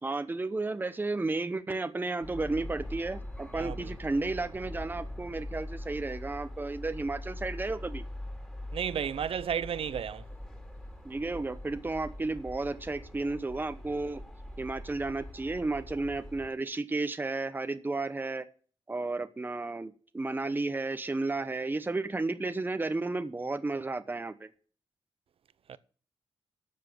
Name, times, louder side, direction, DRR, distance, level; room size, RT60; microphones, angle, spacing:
voice 1, 0.0-8.0 11.0-14.2 14.6-18.5 18.9-24.5, right 3 dB, 20° right, 1.0 m, -33 dB
sound 1, 2.2-16.5, left 1 dB, 5° left, 3.2 m, -43 dB
voice 2, 3.5-3.9 8.7-10.3 25.7-25.8, right 8 dB, 70° right, 0.8 m, -33 dB
12.0 x 7.5 x 8.0 m
wide cardioid pair, 110°, 10 cm